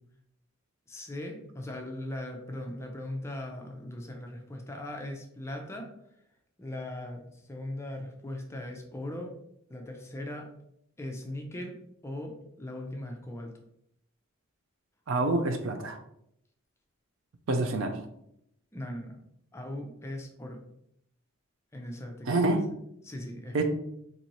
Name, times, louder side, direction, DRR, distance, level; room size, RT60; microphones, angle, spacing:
voice 1, 0.9-5.9 6.6-9.3 9.7-10.5 11.0-11.8 12.0-13.5 17.5-17.6 18.7-19.2 19.5-20.6 21.7-22.6 23.0-23.6, left 1 dB, 15° left, 2 dB, 0.4 m, -39 dB
voice 2, 15.1-16.0 17.5-17.9 22.3-22.6 23.5-23.6, right 2 dB, 70° right, 6 dB, 0.5 m, -26 dB
4.1 x 2.6 x 2.9 m, 0.75 s
head